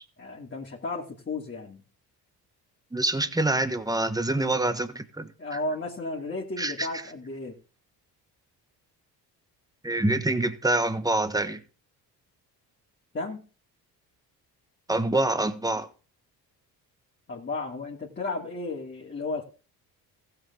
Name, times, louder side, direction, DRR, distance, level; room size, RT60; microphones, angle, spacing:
voice 1, 0.2-1.8 5.4-7.6 13.1-13.4 17.3-19.4, left 2 dB, 30° left, 2.8 m, -34 dB
voice 2, 2.9-5.6 6.6-6.9 9.8-11.6 14.9-15.9, right 2 dB, 10° right, 1.5 m, -26 dB
15.0 x 7.9 x 3.6 m
cardioid pair, 80°, 41 cm